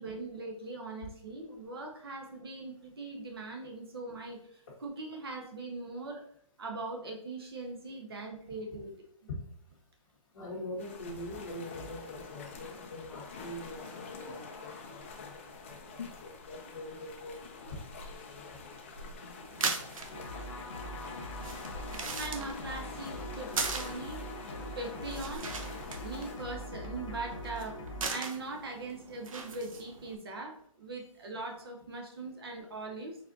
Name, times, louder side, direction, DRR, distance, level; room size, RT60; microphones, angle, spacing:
voice 1, 0.0-6.2 6.6-9.0 22.2-24.3 24.7-25.5 26.0-27.8 28.1-33.2, right 2 dB, 45° right, 2 dB, 0.7 m, -41 dB
voice 2, 10.3-14.3 14.6-15.3 15.6-17.8 18.1-18.7, left 1 dB, 40° left, -7 dB, 1.3 m, -44 dB
sound 1, 10.8-26.4, left 4 dB, 25° left, 0.4 m, -46 dB
sound 2, 19.4-30.1, right 4 dB, 80° right, 0.8 m, -40 dB
sound 3, 20.1-28.1, left 1 dB, 60° left, 1.2 m, -42 dB
4.4 x 4.0 x 2.6 m, 0.66 s
hypercardioid pair, 175°, 17 cm